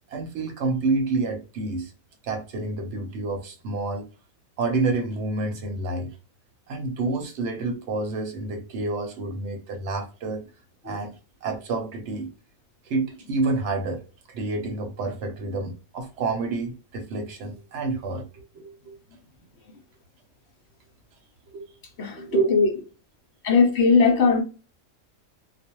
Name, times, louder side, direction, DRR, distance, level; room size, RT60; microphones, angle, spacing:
voice 1, 0.1-1.9 2.2-4.1 4.6-6.1 6.7-10.4 10.8-11.1 11.4-12.3 12.9-14.0 14.3-19.0 21.5-21.7 22.1-22.5, right 3 dB, 65° right, 0.9 m, -29 dB
voice 2, 22.0-22.7 23.4-24.4, left 4 dB, 65° left, 0.8 m, -19 dB
2.3 x 2.1 x 2.8 m
omnidirectional pair, 1.4 m